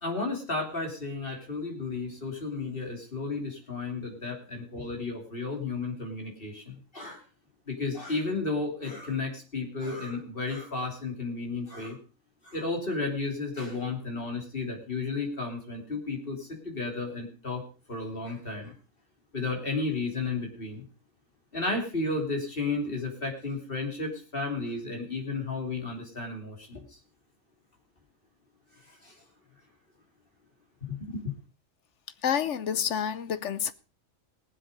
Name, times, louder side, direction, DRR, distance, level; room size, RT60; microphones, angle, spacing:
voice 1, 0.0-7.2 7.7-12.0 12.4-17.6 17.9-18.7 19.3-20.8 21.5-26.8 29.0-29.1 30.9-31.3, left 3 dB, 45° left, 3.3 m, -33 dB
voice 2, 32.2-33.7, left 8 dB, 65° left, 1.1 m, -28 dB
19.0 x 7.7 x 5.3 m
omnidirectional pair, 1.3 m